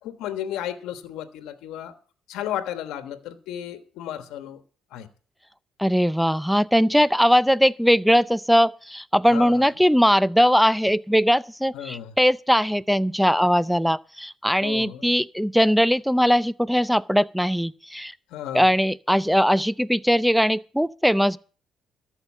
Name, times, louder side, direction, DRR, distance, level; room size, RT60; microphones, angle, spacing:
voice 1, 0.0-1.9 2.3-4.6 4.9-5.1 9.3-9.7 11.7-12.1 14.6-15.1 18.3-18.7, left 11 dB, 85° left, 1.3 m, -33 dB
voice 2, 5.8-18.1 18.5-21.4, equal, ahead, 0.5 m, -20 dB
13.5 x 5.5 x 9.2 m
cardioid pair, 80°, 0 cm